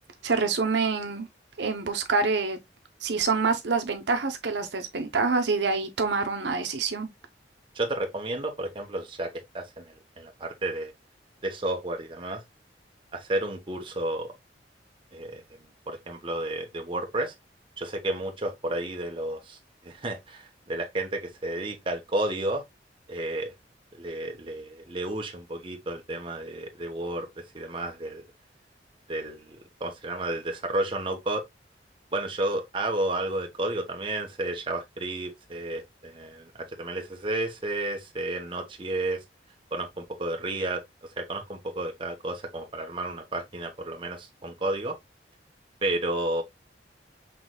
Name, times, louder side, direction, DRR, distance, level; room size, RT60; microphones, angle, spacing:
voice 1, 0.2-1.3 1.6-2.6 3.0-7.1, right 4 dB, 75° right, 0.8 m, -26 dB
voice 2, 7.7-10.9 11.4-12.4 13.1-14.3 15.1-15.4 15.9-17.3 17.8-22.6 23.1-23.5 23.9-28.2 29.1-31.4 32.1-36.5 36.8-39.2 39.7-40.8 41.2-44.9 45.8-46.4, right 1 dB, 30° right, 0.9 m, -32 dB
5.9 x 3.1 x 2.2 m
head